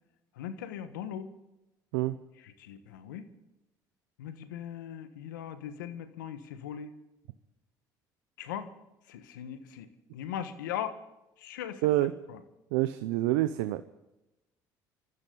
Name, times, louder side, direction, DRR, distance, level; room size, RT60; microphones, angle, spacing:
voice 1, 0.4-1.3 2.4-3.3 4.2-6.9 8.4-8.7 9.1-9.9 10.1-11.0 11.4-11.9 12.3-12.4, left 9 dB, 90° left, 10 dB, 1.3 m, -39 dB
voice 2, 11.8-12.1 12.7-13.8, right 15 dB, 80° right, 12 dB, 0.7 m, -27 dB
25.0 x 14.5 x 3.9 m, 0.94 s
hypercardioid pair, 65°, 10 cm